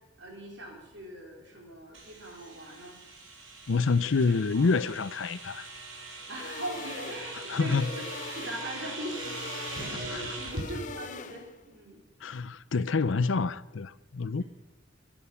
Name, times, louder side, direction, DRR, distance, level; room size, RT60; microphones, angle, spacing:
voice 1, 0.2-3.0 4.4-4.7 6.3-8.1 8.3-10.0 10.4-12.0 14.4-14.5, right 1 dB, 70° right, 4.2 m, -41 dB
sound 1, 1.9-10.7, right 2 dB, 85° right, 3.6 m, -41 dB
voice 2, 3.7-5.7 7.5-7.9 9.9-10.4 12.2-14.4, left 4 dB, 80° left, 0.6 m, -27 dB
sound 2, 6.3-11.7, left 4 dB, 40° left, 0.7 m, -43 dB
22.5 x 9.1 x 5.7 m
head